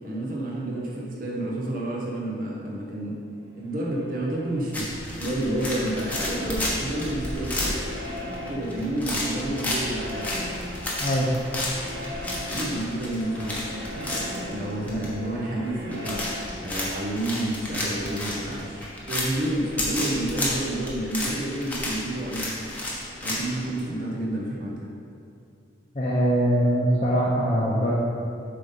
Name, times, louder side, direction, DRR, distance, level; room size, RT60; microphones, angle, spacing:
voice 1, 0.0-3.1 3.6-7.8 8.5-10.4 12.5-13.6 13.9-24.9, right 1 dB, 45° right, -3 dB, 1.1 m, -30 dB
sound 1, 3.6-20.2, left 1 dB, 70° right, 1.0 m, -40 dB
sound 2, 4.7-23.8, left 1 dB, 10° left, 1.0 m, -32 dB
voice 2, 25.9-27.9, equal, 35° left, -6 dB, 0.8 m, -22 dB
7.9 x 3.8 x 5.4 m, 2.4 s
head